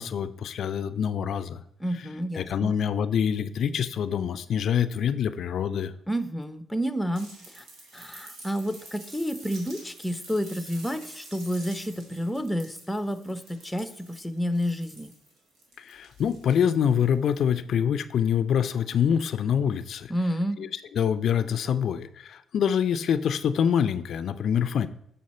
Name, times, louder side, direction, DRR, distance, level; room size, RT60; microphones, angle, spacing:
voice 1, 0.0-1.6 2.3-5.9 15.8-20.1 20.6-24.9, left 8 dB, 65° left, 13 dB, 0.4 m, -25 dB
voice 2, 1.8-2.7 6.1-7.3 7.6-7.7 7.9-15.1 20.1-20.6, equal, 5° left, 10 dB, 0.7 m, -30 dB
sound 1, 7.1-17.5 18.9-19.0, right 2 dB, 80° right, 2.4 m, -48 dB
7.7 x 5.5 x 4.2 m, 0.73 s
cardioid pair, 90°, 0 cm